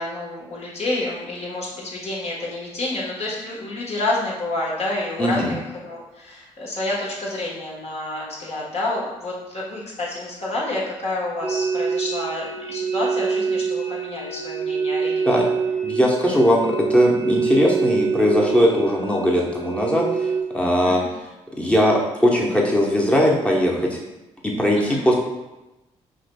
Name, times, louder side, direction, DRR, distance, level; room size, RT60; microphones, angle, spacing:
voice 1, 0.0-15.5 20.8-21.1 24.7-25.0, left 2 dB, 45° left, -4 dB, 1.3 m, -29 dB
voice 2, 5.2-5.5 15.2-15.5 15.8-16.6 16.9-21.0 21.6-24.0 24.4-25.1, equal, 10° left, -2 dB, 1.0 m, -19 dB
sound 1, 11.4-20.4, right 5 dB, 25° right, 0.6 m, -25 dB
4.9 x 2.9 x 2.2 m, 1.0 s
hypercardioid pair, 40°, 15 cm